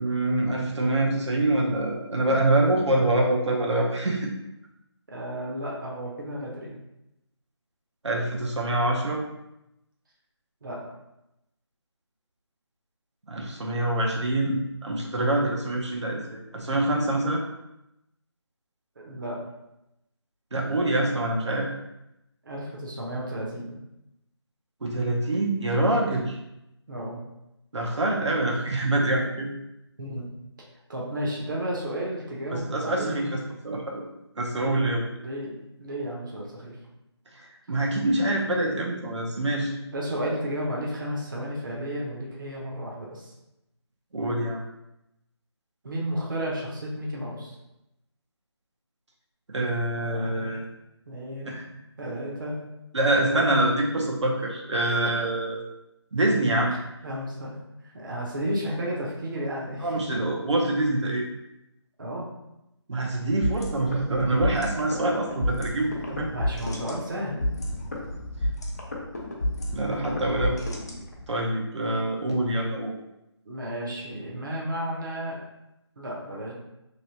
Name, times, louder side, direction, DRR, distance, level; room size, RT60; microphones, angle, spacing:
voice 1, 0.0-4.3 8.0-9.2 13.3-17.4 20.5-21.7 24.8-26.4 27.7-29.5 32.5-33.3 33.6-34.0 34.4-35.1 37.3-39.7 44.1-44.6 49.5-50.6 51.4-51.6 52.9-55.6 56.1-56.7 59.8-61.3 62.9-66.3 69.7-70.6 71.3-72.9, right 1 dB, 80° right, -2 dB, 0.8 m, -25 dB
voice 2, 5.1-6.8 10.6-10.8 19.0-19.4 22.4-23.8 26.9-27.2 30.0-30.3 30.9-33.3 35.2-35.5 35.8-36.8 38.0-38.1 39.8-43.3 45.8-47.6 50.0-50.6 51.1-51.6 52.0-52.6 53.1-53.6 57.0-57.6 57.8-60.3 62.0-62.3 66.3-67.6 73.4-75.4 76.0-76.5, equal, 45° right, -4 dB, 0.8 m, -33 dB
sound 1, 63.4-71.4, left 1 dB, 35° left, 0.5 m, -31 dB
3.0 x 2.9 x 2.8 m, 0.88 s
figure-of-eight pair, 170°, 15 cm